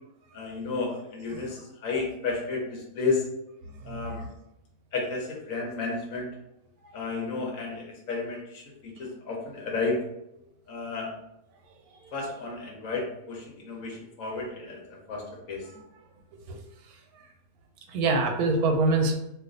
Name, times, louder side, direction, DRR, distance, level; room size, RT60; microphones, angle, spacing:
voice 1, 0.3-3.3 3.8-4.2 4.9-6.3 6.9-10.0 10.7-11.1 12.1-15.7, left 4 dB, 70° left, -1 dB, 1.1 m, -32 dB
voice 2, 3.8-4.3 11.9-12.0 16.5-16.6 16.9-17.3 17.9-19.1, right 3 dB, 85° right, 3 dB, 1.1 m, -26 dB
2.5 x 2.4 x 3.7 m, 0.84 s
omnidirectional pair, 1.5 m